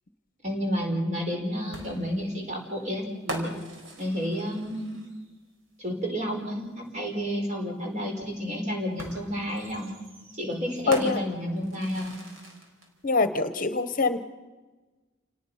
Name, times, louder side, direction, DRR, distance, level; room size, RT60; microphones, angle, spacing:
voice 1, 0.4-3.5 4.0-4.9 5.8-9.9 10.4-12.1, equal, 35° right, 1 dB, 5.0 m, -31 dB
sound 1, 1.7-5.4 6.9-7.0 9.0-12.9, right 1 dB, 85° right, 4.3 m, -40 dB
voice 2, 10.9-11.2 13.0-14.2, left 3 dB, 45° left, 11 dB, 1.0 m, -24 dB
29.0 x 19.0 x 5.7 m, 1.2 s
head